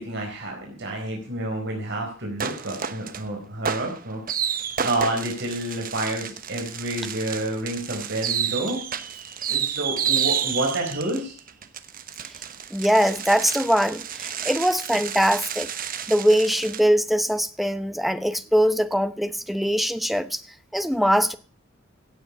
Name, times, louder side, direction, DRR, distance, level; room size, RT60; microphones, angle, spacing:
voice 1, 0.0-4.2 4.8-8.8 9.5-11.3, right 1 dB, 60° right, 4.6 m, -29 dB
sound 1, 2.4-3.2 3.6-16.8, right 8 dB, 45° right, 1.1 m, -30 dB
voice 2, 12.7-15.7 16.1-20.4 20.7-21.4, equal, ahead, 0.9 m, -22 dB
16.5 x 8.6 x 5.5 m
head